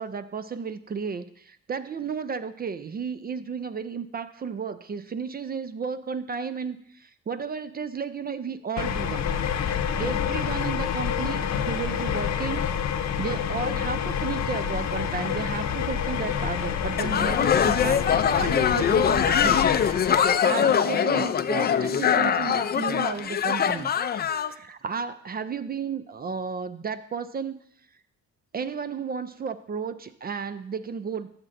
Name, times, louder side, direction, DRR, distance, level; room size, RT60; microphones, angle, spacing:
voice 1, 0.0-9.3 10.0-12.6 13.2-23.9 24.2-27.6 28.5-31.3, right 6 dB, 30° right, 13 dB, 0.4 m, -33 dB
sound 1, 8.8-20.4, left 8 dB, 65° left, 0.8 m, -28 dB
sound 2, 17.0-24.5, left 8 dB, 35° left, 0.4 m, -23 dB
13.5 x 6.5 x 2.6 m, 0.70 s
cardioid pair, 90°, 30 cm